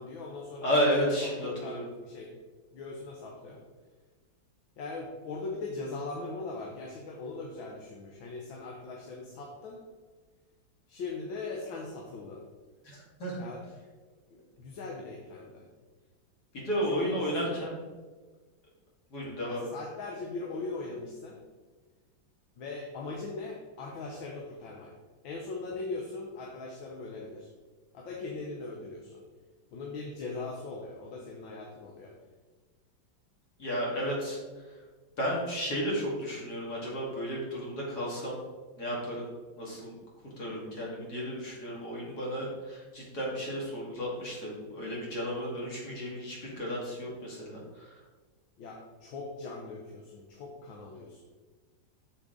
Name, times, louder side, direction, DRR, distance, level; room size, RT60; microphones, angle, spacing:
voice 1, 0.0-2.3 2.7-3.6 4.8-9.8 10.9-12.4 13.4-13.6 14.3-15.7 16.9-17.6 19.4-21.4 22.6-24.9 25.2-27.5 27.9-29.2 29.7-32.1 48.6-51.2, left 3 dB, 80° left, 0 dB, 1.7 m, -40 dB
voice 2, 0.6-1.9 12.8-13.4 16.5-17.8 19.1-19.7 33.6-34.4 34.7-34.8 35.2-38.4 38.8-39.3 39.6-39.9 40.2-48.0, equal, 55° left, -4 dB, 2.7 m, -33 dB
7.6 x 7.0 x 3.8 m, 1.4 s
omnidirectional pair, 2.1 m